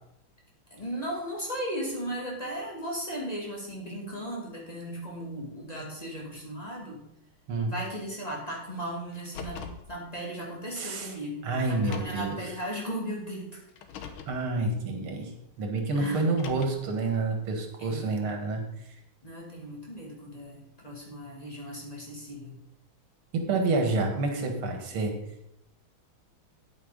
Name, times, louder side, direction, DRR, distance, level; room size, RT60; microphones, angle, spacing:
voice 1, 0.7-7.0 7.6-13.6 15.9-16.3 17.8-18.1 19.2-22.6, equal, 20° left, -3 dB, 2.9 m, -36 dB
Car, 9.1-9.9 10.9-11.0 11.7-12.4 13.7-14.4 16.2-16.9, left 7 dB, 80° left, 1.9 m, -42 dB
voice 2, 10.8-11.1 11.4-12.4 14.3-15.3 15.6-18.6 23.3-25.1, right 3 dB, 85° right, 4 dB, 2.5 m, -28 dB
9.5 x 8.8 x 5.2 m, 0.80 s
omnidirectional pair, 2.3 m